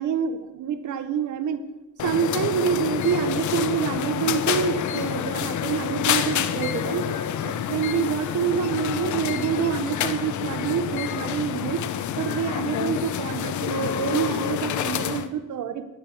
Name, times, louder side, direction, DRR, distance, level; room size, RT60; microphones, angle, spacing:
voice 1, 0.0-1.6 2.0-7.0 7.4-11.8 12.2-15.9, right 8 dB, 75° right, 10 dB, 1.5 m, -27 dB
sound 1, 2.0-15.3, left 9 dB, 75° left, 1.0 m, -28 dB
13.5 x 12.0 x 6.4 m, 1.0 s
cardioid pair, 90°, 30 cm